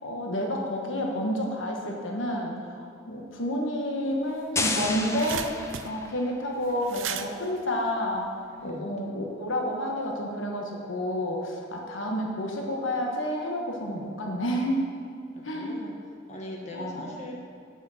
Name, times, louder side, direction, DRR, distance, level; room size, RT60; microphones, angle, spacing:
voice 1, 0.0-8.3 8.6-14.8 15.4-15.7 16.7-17.1, equal, 70° left, 0 dB, 1.3 m, -30 dB
sound 1, 4.1-4.2 4.4-8.7, right 8 dB, 70° right, 0.5 m, -38 dB
sound 2, 4.6-6.4, left 3 dB, 15° left, 0.5 m, -31 dB
voice 2, 15.3-15.9 16.3-17.3, left 1 dB, 35° left, -2 dB, 1.2 m, -40 dB
8.6 x 7.3 x 5.7 m, 2.4 s
head